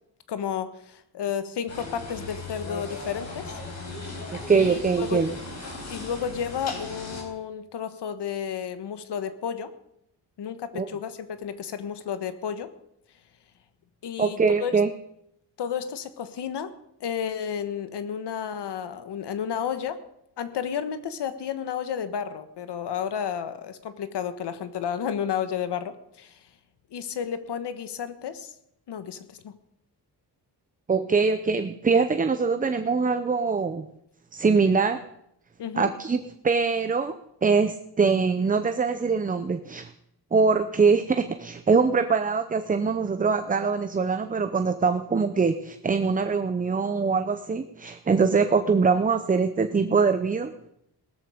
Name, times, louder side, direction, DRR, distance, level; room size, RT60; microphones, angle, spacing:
voice 1, 0.3-3.5 4.5-5.2 5.9-9.7 10.4-12.7 14.0-14.8 15.6-16.7 17.0-20.0 20.4-26.4 26.9-28.5 28.9-29.5 35.6-35.9, left 8 dB, 80° left, 11 dB, 1.4 m, -32 dB
sound 1, 1.7-7.2, left 3 dB, 40° left, 4.7 m, -37 dB
voice 2, 4.3-5.3 10.7-10.9 14.2-14.9 30.9-33.9 34.3-35.0 35.8-37.1 37.4-39.9 40.3-50.5, right 5 dB, 20° right, 9 dB, 0.6 m, -23 dB
18.0 x 13.5 x 5.1 m, 0.77 s
wide cardioid pair, 140°, 40 cm